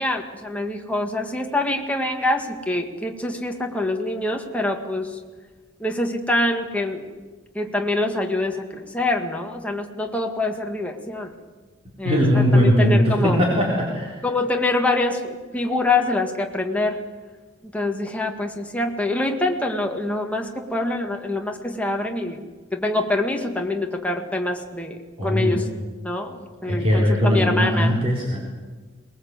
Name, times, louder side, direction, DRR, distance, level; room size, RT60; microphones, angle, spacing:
voice 1, 0.0-5.1 5.8-7.0 7.5-11.3 12.0-13.4 14.2-17.0 17.6-22.4 22.7-25.7 26.0-28.0, left 2 dB, 5° left, 2 dB, 2.0 m, -25 dB
voice 2, 12.0-14.2 25.2-25.6 26.6-28.4, equal, 30° right, -3 dB, 4.1 m, -19 dB
22.5 x 20.0 x 8.1 m, 1.4 s
head